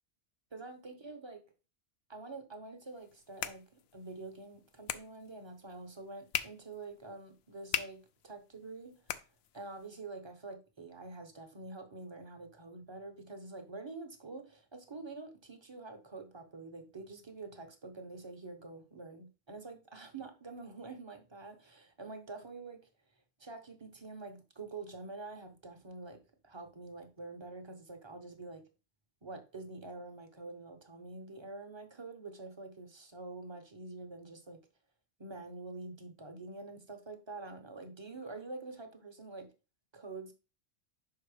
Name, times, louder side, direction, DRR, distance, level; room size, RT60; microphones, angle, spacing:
voice 1, 0.5-1.4 2.1-9.2 9.5-22.9 23.4-28.6 29.2-34.6 35.2-39.5 39.9-40.3, right 3 dB, 25° right, 0.9 m, -47 dB
sound 1, 2.9-9.9, left 10 dB, 70° left, 0.8 m, -42 dB
5.6 x 4.7 x 4.9 m
omnidirectional pair, 1.2 m